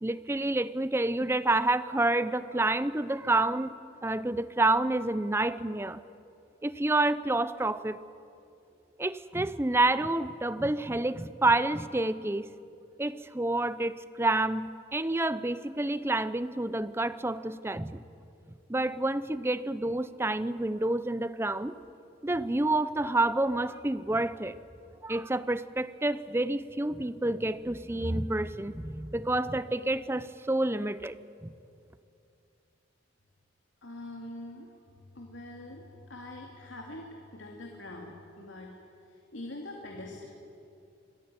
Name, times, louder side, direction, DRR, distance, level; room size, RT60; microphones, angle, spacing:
voice 1, 0.0-3.7 4.0-6.0 6.6-8.0 9.0-12.5 13.0-18.0 18.7-21.7 22.2-24.6 25.0-31.2 31.4-31.5, right 2 dB, 15° right, 14 dB, 0.6 m, -28 dB
voice 2, 33.8-34.7 35.2-38.7 39.3-40.3, left 1 dB, 90° left, 0 dB, 2.5 m, -43 dB
26.0 x 14.5 x 9.7 m, 2.6 s
head